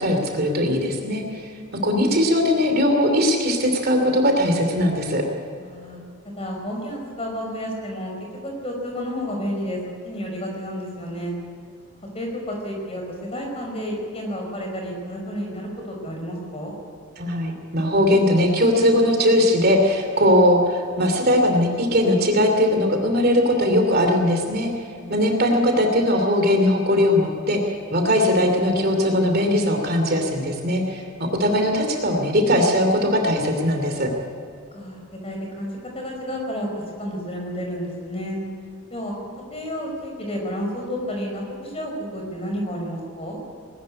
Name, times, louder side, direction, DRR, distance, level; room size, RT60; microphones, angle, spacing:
voice 1, 0.0-1.5 1.8-5.2 17.2-24.8 25.1-34.1, left 1 dB, 45° right, 4 dB, 2.8 m, -20 dB
voice 2, 5.6-8.1 8.4-9.8 10.0-11.3 12.1-16.7 24.8-25.3 31.1-31.3 34.7-36.7 37.0-38.4 38.9-39.1 39.5-43.4, equal, 25° left, 1 dB, 5.0 m, -31 dB
20.5 x 13.5 x 9.8 m, 2.4 s
head